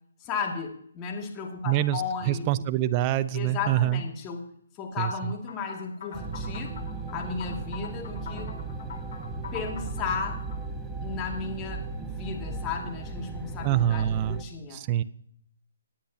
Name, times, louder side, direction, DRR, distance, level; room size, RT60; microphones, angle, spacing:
voice 1, 0.2-2.5 3.3-4.4 4.7-6.7 7.1-8.5 9.5-10.4 11.0-14.8, left 5 dB, 20° left, 1 dB, 2.3 m, -34 dB
voice 2, 1.6-4.0 5.0-5.1 13.6-14.4 14.7-15.0, right 12 dB, 30° right, 16 dB, 0.5 m, -25 dB
sound 1, 5.5-10.6, left 6 dB, 50° left, 4.0 m, -43 dB
sound 2, 6.1-14.4, right 3 dB, 10° right, 1.1 m, -36 dB
18.5 x 10.0 x 2.9 m, 0.66 s
figure-of-eight pair, 145°, 0 cm